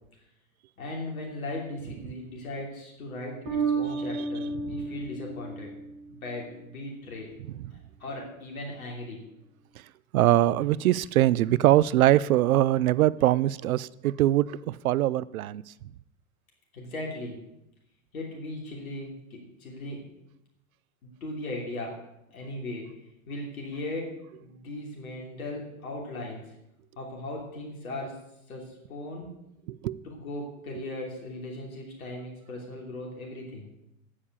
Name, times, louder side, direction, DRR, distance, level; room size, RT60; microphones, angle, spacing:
voice 1, 0.8-5.7 6.0-7.3 7.7-9.2 16.7-17.4 18.1-20.0 21.2-22.0 22.3-22.9 23.3-24.1 24.4-26.4 27.0-28.2 28.5-29.3 30.1-33.7, left 1 dB, 90° left, -1 dB, 3.1 m, -38 dB
Bass guitar, 3.5-6.5, right 4 dB, 55° right, 4.9 m, -32 dB
voice 2, 10.1-15.6 29.8-30.0, right 14 dB, 85° right, 21 dB, 0.6 m, -22 dB
9.8 x 7.5 x 8.3 m, 0.84 s
hypercardioid pair, 95°, 41 cm